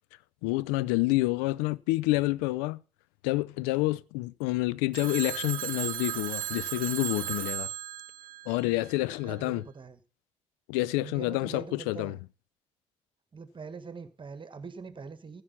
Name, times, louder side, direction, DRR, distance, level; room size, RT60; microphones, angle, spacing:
voice 1, 0.4-2.8 3.2-7.7 8.5-9.6 10.7-12.2, left 20 dB, 70° left, 0.5 m, -28 dB
Telephone, 4.9-9.2, right 15 dB, 60° right, 0.7 m, -36 dB
voice 2, 9.2-10.0 11.0-12.2 13.3-15.4, right 5 dB, 30° right, 1.4 m, -43 dB
15.0 x 6.2 x 5.7 m
figure-of-eight pair, 50°, 16 cm